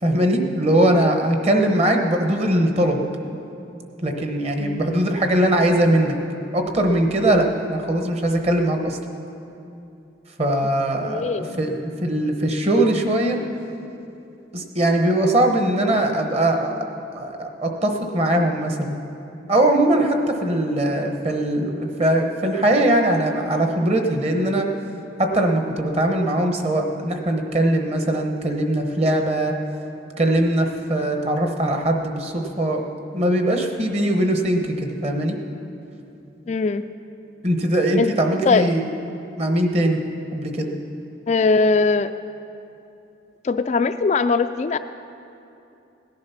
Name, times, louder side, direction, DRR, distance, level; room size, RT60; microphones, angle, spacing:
voice 1, 0.0-3.0 4.0-6.2 6.5-9.0 10.4-13.4 14.5-16.8 17.1-18.9 19.5-24.7 25.2-29.5 30.2-32.8 33.1-35.4 37.4-38.8 39.4-40.0 40.3-40.7, right 1 dB, 35° right, 3 dB, 1.1 m, -21 dB
voice 2, 11.0-11.6 36.5-36.8 38.0-38.1 38.5-38.7 41.3-42.1 43.4-44.8, left 4 dB, 35° left, 9 dB, 0.3 m, -20 dB
17.0 x 10.5 x 5.8 m, 2.7 s
head